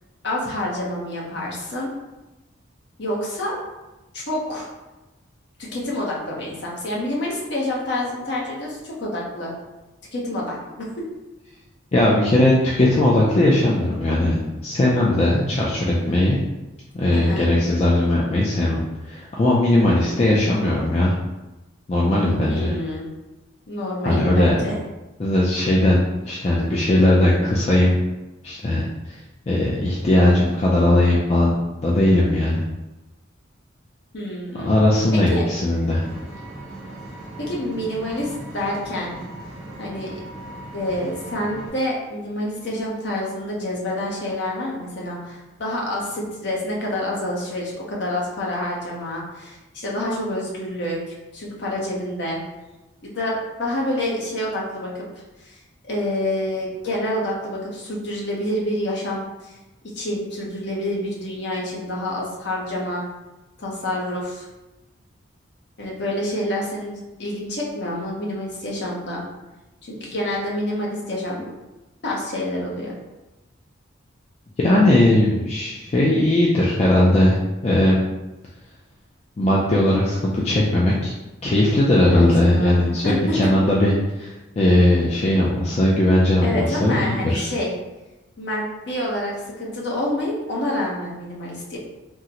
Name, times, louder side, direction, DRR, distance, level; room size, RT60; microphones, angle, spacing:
voice 1, 0.2-1.9 3.0-3.6 4.1-4.7 5.7-9.5 10.1-10.9 17.1-17.5 22.4-23.1 23.7-24.7 34.1-34.8 35.1-35.4 37.4-39.2 39.8-40.2 40.7-51.0 51.3-52.4 53.0-55.0 55.4-55.6 55.9-59.6 59.9-63.0 63.6-64.5 65.8-69.2 69.8-71.5 72.0-72.9 81.9-83.5 86.4-87.7 88.4-91.8, left 1 dB, 55° left, -3 dB, 0.8 m, -27 dB
voice 2, 11.9-14.3 14.6-16.4 16.9-18.8 19.1-21.1 21.9-22.7 24.0-24.5 25.2-26.0 26.2-28.0 28.4-28.8 29.5-31.6 31.8-32.6 34.6-36.0 74.6-77.4 77.6-78.0 79.4-81.1 81.4-83.9 84.2-87.5, left 1 dB, 30° left, -5 dB, 0.3 m, -18 dB
Vehicle, 36.0-41.7, right 1 dB, ahead, 0.8 m, -38 dB
3.7 x 2.1 x 2.8 m, 1.0 s
head